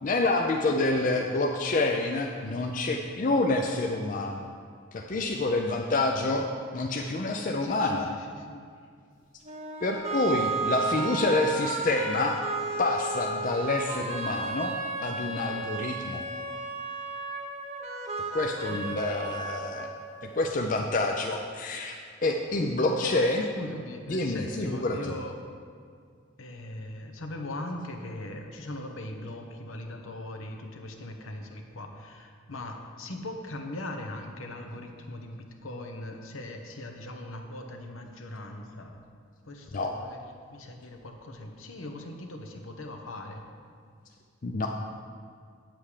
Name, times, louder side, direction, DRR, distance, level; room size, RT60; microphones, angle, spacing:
voice 1, 0.0-4.5 4.9-6.5 6.7-8.1 9.8-12.4 12.8-14.7 15.0-16.2 18.3-19.9 20.2-22.0 22.2-23.4 24.1-25.1 39.7-39.9 44.4-44.7, left 2 dB, 40° left, 2 dB, 0.5 m, -27 dB
voice 2, 7.6-8.7 18.7-18.8 19.2-19.3 23.0-25.4 26.4-39.0 39.4-43.4, left 1 dB, 75° left, 4 dB, 1.0 m, -40 dB
sound 1, 9.4-20.4, right 3 dB, 30° right, 0.8 m, -34 dB
8.5 x 7.7 x 4.9 m, 2.1 s
head